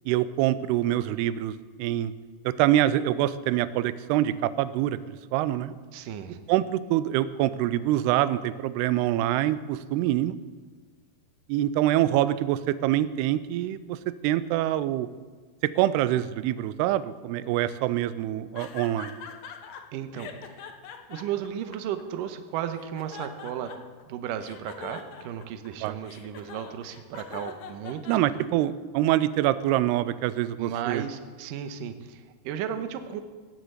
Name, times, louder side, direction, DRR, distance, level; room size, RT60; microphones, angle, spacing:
voice 1, 0.1-1.5 1.8-2.1 2.5-5.7 6.5-10.4 11.5-14.0 14.2-15.1 15.8-19.1 25.8-26.0 28.1-31.0, right 13 dB, 90° right, 15 dB, 2.6 m, -25 dB
voice 2, 5.9-6.4 19.9-20.7 21.1-23.7 24.1-28.2 30.6-33.2, right 9 dB, 75° right, 8 dB, 2.2 m, -34 dB
sound 1, 18.6-19.8 20.2-22.3 22.7-24.0 24.4-28.7, left 7 dB, 75° left, 1.6 m, -43 dB
16.5 x 8.1 x 8.0 m, 1.5 s
omnidirectional pair, 4.6 m